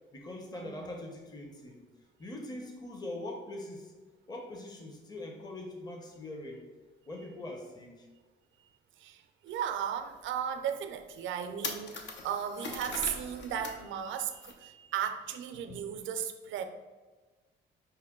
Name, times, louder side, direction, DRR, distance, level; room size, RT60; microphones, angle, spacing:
voice 1, 0.1-1.8 2.2-3.9 4.3-6.6 7.1-8.1, left 1 dB, 20° left, 1 dB, 0.7 m, -42 dB
voice 2, 9.0-16.6, right 9 dB, 75° right, 7 dB, 0.5 m, -36 dB
sound 1, 9.5-9.6 10.1-10.2 10.8-10.9 11.1-13.8 14.1-14.5, left 4 dB, 65° left, 0.7 m, -41 dB
5.5 x 2.2 x 3.5 m, 1.3 s
cardioid pair, 90°, 20 cm